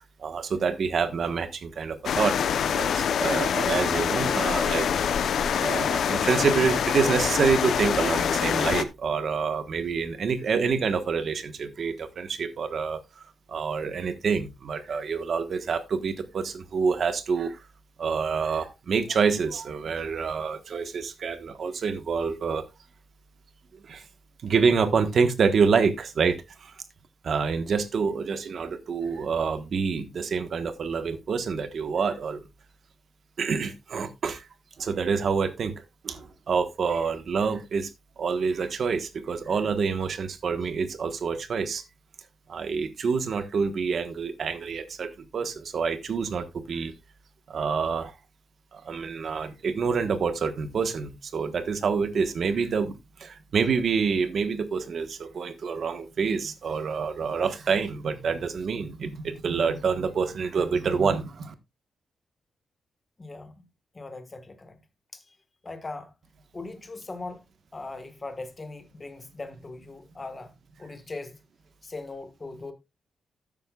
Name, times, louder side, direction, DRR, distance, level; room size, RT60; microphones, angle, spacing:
voice 1, 0.0-2.4 2.7-4.9 5.6-13.0 13.5-17.6 18.0-22.6 23.8-24.0 24.4-26.7 27.2-32.5 33.4-34.5 34.8-35.7 36.0-37.9 38.2-41.8 42.5-46.9 47.5-48.1 48.7-52.9 53.2-61.5, right 5 dB, 50° right, 1.4 m, -27 dB
sound 1, 2.0-8.8, left 8 dB, 65° left, 0.8 m, -25 dB
voice 2, 63.2-63.6 63.9-64.8 65.1-65.3 65.6-66.1 66.5-67.4 67.7-70.5 70.8-71.4 71.8-72.7, left 3 dB, 20° left, 1.6 m, -39 dB
12.5 x 9.1 x 2.4 m
wide cardioid pair, 165°, 0 cm